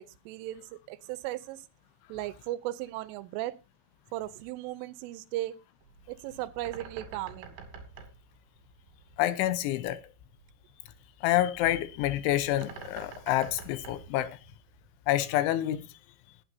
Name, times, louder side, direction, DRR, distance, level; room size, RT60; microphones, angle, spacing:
voice 1, 0.0-1.7 2.1-3.5 4.1-5.6 6.1-7.6, right 15 dB, 85° right, 3.3 m, -36 dB
Bird, 5.8-15.0, right 5 dB, 65° right, 4.3 m, -49 dB
voice 2, 9.2-10.0 11.2-14.4 15.1-15.9, left 13 dB, 80° left, 3.1 m, -28 dB
20.0 x 9.0 x 2.7 m
omnidirectional pair, 5.7 m